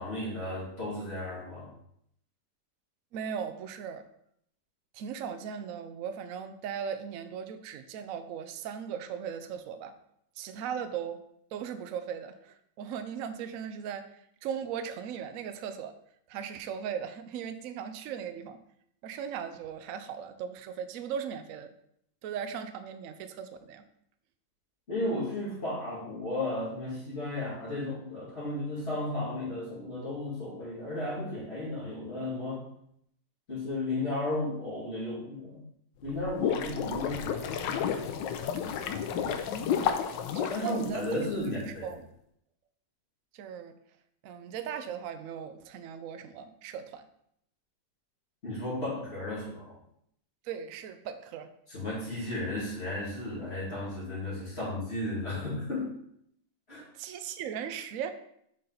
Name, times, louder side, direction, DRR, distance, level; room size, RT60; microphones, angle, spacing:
voice 1, 0.0-1.7 24.9-32.6 33.5-35.6 36.0-37.4 40.5-41.9 48.4-49.7 51.7-55.9 56.7-56.8, left 1 dB, 35° left, -7 dB, 2.6 m, -34 dB
voice 2, 3.1-4.0 4.9-9.9 10.4-11.2 11.5-15.9 16.3-18.6 19.0-21.7 22.2-23.8 39.0-39.9 40.3-41.0 41.7-42.0 43.3-43.8 44.2-47.1 50.4-51.5 56.9-58.1, right 8 dB, 65° right, 9 dB, 0.8 m, -38 dB
sound 1, 36.0-41.5, left 8 dB, 90° left, 1.3 m, -31 dB
7.5 x 4.1 x 3.9 m, 0.73 s
omnidirectional pair, 2.0 m